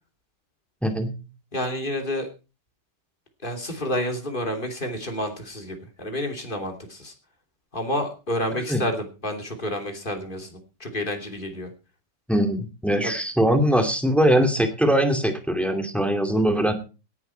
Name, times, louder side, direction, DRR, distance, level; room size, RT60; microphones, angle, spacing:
voice 1, 1.5-2.3 3.4-7.1 7.7-11.7 13.0-13.1, left 1 dB, 30° left, 4 dB, 3.2 m, -29 dB
voice 2, 12.3-16.7, equal, ahead, 7 dB, 2.4 m, -21 dB
17.5 x 11.0 x 4.5 m, 0.33 s
omnidirectional pair, 1.9 m